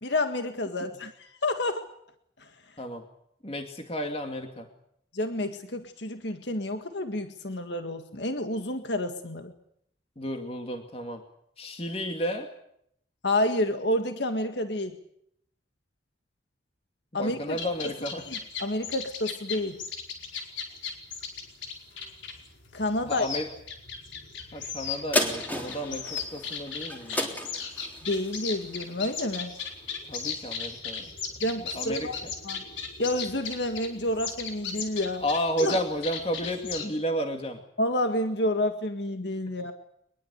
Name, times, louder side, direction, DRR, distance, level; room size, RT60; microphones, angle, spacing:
voice 1, 0.0-1.9 5.1-9.5 13.2-15.0 17.1-17.6 18.3-19.8 22.7-23.3 28.0-29.5 31.4-32.2 32.4-32.6 33.0-35.2 35.6-35.8 37.8-39.7, left 1 dB, 65° left, 7 dB, 1.8 m, -29 dB
voice 2, 3.4-4.7 10.2-11.2 11.6-12.5 17.1-18.3 23.0-23.5 24.5-27.4 30.1-31.1 31.6-32.3 35.2-37.6, equal, 30° left, 4 dB, 2.3 m, -32 dB
sound 1, 17.5-36.9, left 6 dB, 85° left, 4.8 m, -37 dB
sound 2, 25.1-29.9 30.4-30.5, left 1 dB, 10° left, 3.5 m, -33 dB
23.5 x 21.5 x 8.1 m, 0.72 s
head